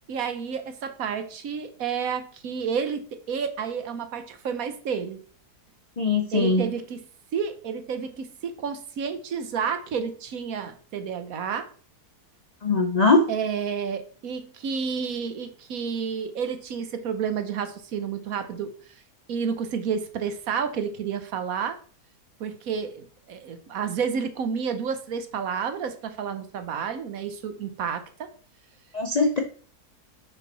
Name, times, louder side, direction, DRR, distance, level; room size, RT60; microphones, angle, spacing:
voice 1, 0.1-5.2 6.3-7.0 7.3-11.7 13.3-18.7 19.3-21.8 22.4-28.0, right 6 dB, 65° right, 9 dB, 1.1 m, -30 dB
voice 2, 6.0-6.7 12.6-13.3 28.9-29.4, left 3 dB, 60° left, 4 dB, 0.4 m, -21 dB
5.9 x 5.5 x 4.0 m, 0.43 s
omnidirectional pair, 1.8 m